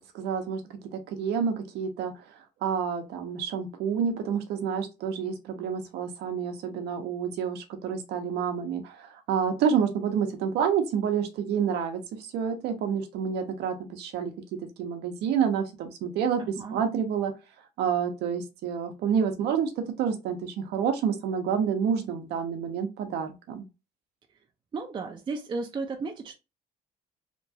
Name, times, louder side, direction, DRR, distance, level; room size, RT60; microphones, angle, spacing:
voice 1, 0.1-0.6 0.9-17.3 17.8-23.7, right 7 dB, 80° right, 0.7 m, -29 dB
voice 2, 24.7-26.3, right 4 dB, 30° right, 0.4 m, -34 dB
2.9 x 2.3 x 2.7 m
cardioid pair, 110°, 17 cm